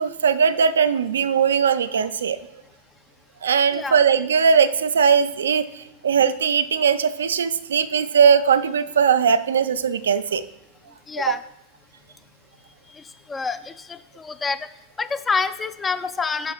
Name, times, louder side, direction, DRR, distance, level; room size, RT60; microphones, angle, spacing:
voice 1, 0.0-2.4 3.4-10.4 11.3-11.4, right 6 dB, 70° right, 11 dB, 0.3 m, -19 dB
voice 2, 11.1-11.4 13.3-14.6 15.0-16.5, left 4 dB, 15° left, 12 dB, 0.4 m, -27 dB
10.0 x 6.0 x 2.2 m, 0.85 s
figure-of-eight pair, 85°, 0 cm